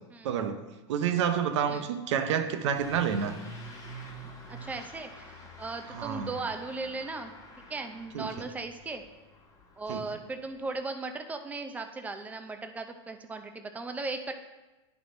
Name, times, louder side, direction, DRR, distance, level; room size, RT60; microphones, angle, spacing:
voice 1, 0.2-0.6 0.9-3.4 5.9-6.3 8.1-8.4 9.9-10.0, right 8 dB, 80° right, 8 dB, 0.7 m, -29 dB
Truck / Accelerating revving vroom, 2.7-10.7, right 1 dB, 20° left, 1.2 m, -47 dB
voice 2, 4.5-7.3 7.7-9.0 9.8-14.3, right 3 dB, 10° right, 6 dB, 0.5 m, -37 dB
10.5 x 3.6 x 3.8 m, 1.1 s
supercardioid pair, 135°, 15 cm